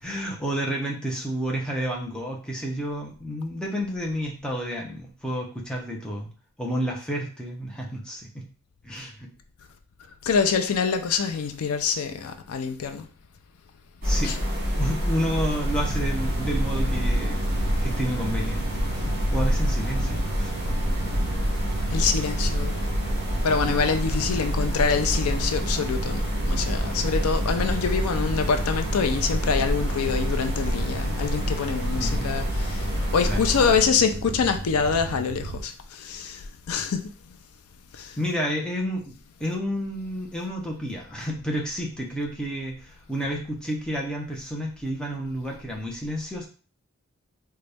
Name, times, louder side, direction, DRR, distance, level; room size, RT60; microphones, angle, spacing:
voice 1, 0.0-6.3 6.6-8.4 8.8-9.3 14.0-14.3 14.8-18.6 18.9-20.5 32.0-32.3 33.3-33.5 38.2-39.1 39.4-46.5, equal, 5° left, 0.6 m, -30 dB
voice 2, 10.2-13.1 14.2-14.4 21.9-22.8 23.4-37.0 37.9-38.1, left 5 dB, 85° left, 0.5 m, -25 dB
sound 1, 14.0-33.8, equal, 45° right, 1.5 m, -27 dB
sound 2, 15.7-35.6, right 2 dB, 60° right, 0.4 m, -34 dB
3.9 x 2.2 x 3.3 m
head